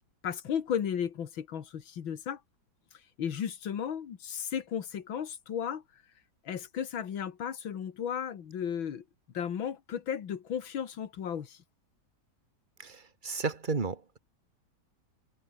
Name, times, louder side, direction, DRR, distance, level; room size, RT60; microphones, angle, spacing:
voice 1, 0.2-2.4 3.2-5.8 6.5-9.0 9.3-11.6, left 8 dB, 80° left, 2.4 m, -34 dB
voice 2, 12.8-14.2, right 4 dB, 25° right, 2.0 m, -33 dB
omnidirectional pair, 2.1 m